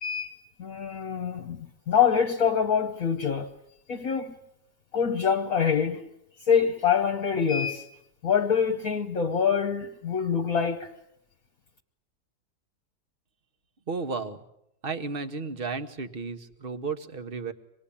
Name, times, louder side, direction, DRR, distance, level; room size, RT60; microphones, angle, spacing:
voice 1, 0.0-3.5 3.9-4.4 4.9-6.1 6.5-7.9 8.2-10.9, left 7 dB, 55° left, 1.5 m, -25 dB
voice 2, 13.9-14.4 14.8-17.5, right 4 dB, 35° right, 1.4 m, -33 dB
25.5 x 20.0 x 8.7 m
omnidirectional pair, 1.8 m